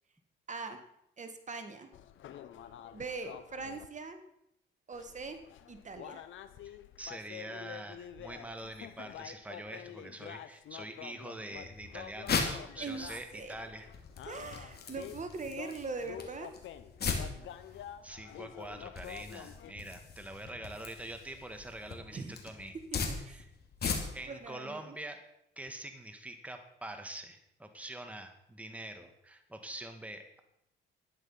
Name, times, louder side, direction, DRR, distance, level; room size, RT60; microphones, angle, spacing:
voice 1, 0.5-0.8 1.2-1.9 2.9-4.2 4.9-5.4 5.7-6.2 12.8-13.1 13.3-13.5 14.3-16.5 22.1-22.3 23.2-23.4 24.3-25.0, right 4 dB, 40° right, 7 dB, 1.7 m, -41 dB
sound 1, 1.9-3.9 4.9-19.7, left 10 dB, 80° left, 1.0 m, -48 dB
voice 2, 6.6-13.9 18.0-22.8 23.3-23.5 24.1-25.2 25.6-30.4, right 1 dB, 5° right, 6 dB, 1.6 m, -45 dB
sound 2, 11.6-24.4, left 5 dB, 55° left, 2.7 m, -39 dB
12.5 x 10.0 x 5.7 m, 0.80 s
cardioid pair, 90°, 20 cm